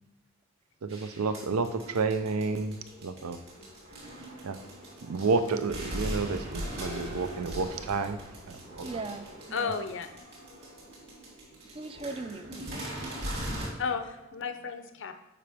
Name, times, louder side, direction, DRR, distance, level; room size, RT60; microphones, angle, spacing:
voice 1, 0.8-3.4 4.4-4.6 5.0-8.2 8.5-8.9, right 4 dB, 85° right, 11 dB, 0.5 m, -30 dB
sound 1, 0.9-13.7, equal, 50° right, 2.6 m, -40 dB
voice 2, 8.8-9.8 11.6-12.9, right 3 dB, 25° right, 9 dB, 0.4 m, -39 dB
voice 3, 9.5-10.1 13.8-15.1, left 5 dB, 55° left, 8 dB, 0.5 m, -33 dB
7.5 x 5.0 x 3.4 m, 0.94 s
head